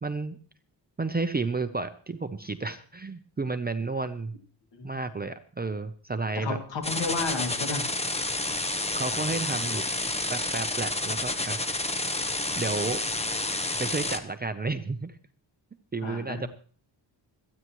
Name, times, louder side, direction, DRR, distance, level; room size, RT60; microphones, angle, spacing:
voice 1, 0.0-0.4 1.0-4.4 4.8-6.6 8.9-9.8 10.3-11.6 12.5-13.0 13.8-15.2 15.9-16.5, right 3 dB, 20° right, 9 dB, 0.6 m, -31 dB
voice 2, 6.3-7.9 16.0-16.5, left 4 dB, 75° left, 3 dB, 2.5 m, -32 dB
sound 1, 6.8-14.2, left 2 dB, 15° left, 0.9 m, -30 dB
25.5 x 9.6 x 3.1 m, 0.43 s
wide cardioid pair, 125°, 43 cm